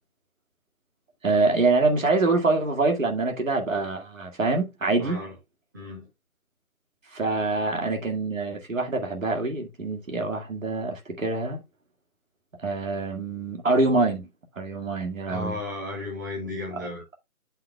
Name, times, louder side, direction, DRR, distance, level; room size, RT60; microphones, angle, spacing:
voice 1, 1.2-5.2 7.1-11.6 12.6-14.2 14.6-15.6 16.7-16.9, right 3 dB, 65° right, 2.1 m, -25 dB
voice 2, 5.0-5.3 5.7-6.1 7.6-7.7 15.3-17.0, left 2 dB, 15° right, 1.7 m, -34 dB
7.8 x 5.7 x 3.3 m
figure-of-eight pair, 170°, 43 cm